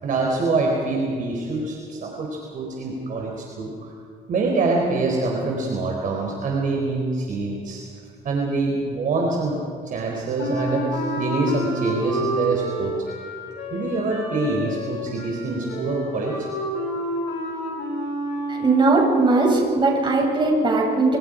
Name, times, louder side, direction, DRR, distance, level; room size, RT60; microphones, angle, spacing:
voice 1, 0.0-3.9 4.3-7.8 8.2-9.5 9.8-12.9 13.7-16.5, right 3 dB, 50° right, 0 dB, 4.1 m, -25 dB
Wind instrument woodwind instrument, 10.4-18.8, equal, 80° left, 7.8 m, -29 dB
voice 2, 18.5-21.2, right 3 dB, 30° right, -1 dB, 7.9 m, -19 dB
27.0 x 26.5 x 5.1 m, 2.3 s
cardioid pair, 110°, 17 cm